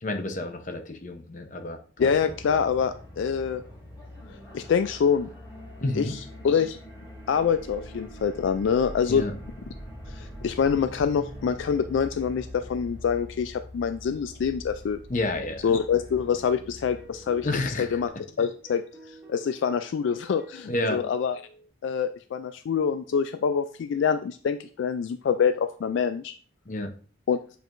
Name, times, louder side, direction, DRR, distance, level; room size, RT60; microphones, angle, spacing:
voice 1, 0.0-2.3 5.8-6.2 9.1-9.3 15.1-15.7 17.4-18.0 20.7-21.0 26.7-26.9, left 2 dB, 40° left, 6 dB, 0.7 m, -30 dB
voice 2, 2.0-3.6 4.3-5.3 6.0-6.8 7.3-9.2 10.1-15.0 15.6-17.5 17.8-18.1 18.4-21.4 21.8-26.3 27.3-27.4, left 6 dB, 70° left, 11 dB, 0.3 m, -26 dB
sound 1, 2.0-18.1, equal, 25° left, 3.3 m, -43 dB
sound 2, 16.4-21.7, right 1 dB, 10° right, 1.7 m, -51 dB
8.1 x 4.6 x 2.6 m, 0.41 s
head